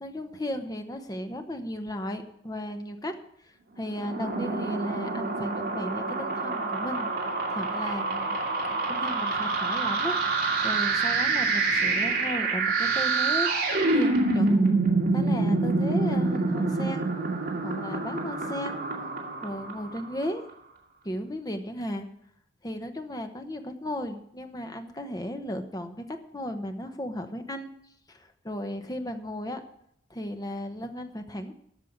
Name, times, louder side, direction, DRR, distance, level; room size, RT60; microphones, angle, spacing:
voice 1, 0.0-3.1 3.8-7.1 7.5-8.4 8.6-10.2 10.6-13.5 13.9-14.7 15.1-17.1 17.6-18.8 19.4-20.4 21.0-22.1 22.6-27.7 28.1-29.6 30.1-31.5, left 1 dB, 20° left, 6 dB, 1.0 m, -35 dB
sound 1, 3.9-20.2, right 3 dB, 55° right, 2.4 m, -27 dB
13.5 x 5.5 x 7.9 m, 0.72 s
head